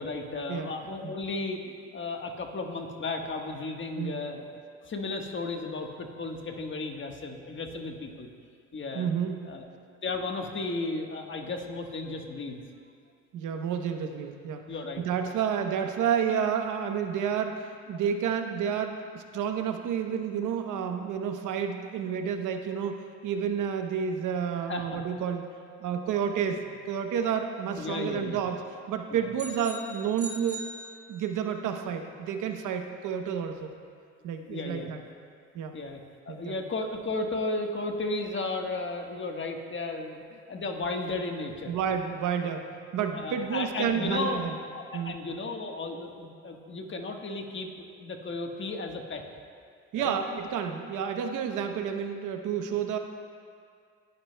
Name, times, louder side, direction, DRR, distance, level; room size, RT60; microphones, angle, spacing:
voice 1, 0.0-4.5 4.8-8.3 8.7-9.1 9.5-9.7 10.0-12.6 14.7-15.0 24.7-25.0 27.8-28.4 29.1-29.3 34.3-34.9 35.7-36.0 36.3-41.8 43.0-44.4 44.7-47.7 48.0-49.2 49.9-50.1, left 3 dB, 40° left, 3 dB, 1.4 m, -34 dB
voice 2, 8.9-9.5 13.3-14.6 15.0-25.5 25.8-28.6 28.9-30.6 31.1-33.7 34.2-35.0 35.5-35.7 36.3-36.6 41.7-44.5 44.9-45.2 49.9-53.0, right 7 dB, 85° right, 5 dB, 0.9 m, -30 dB
sound 1, 29.4-31.6, right 2 dB, 30° right, 2.8 m, -42 dB
19.5 x 11.0 x 2.2 m, 2.2 s
cardioid pair, 90°, 30 cm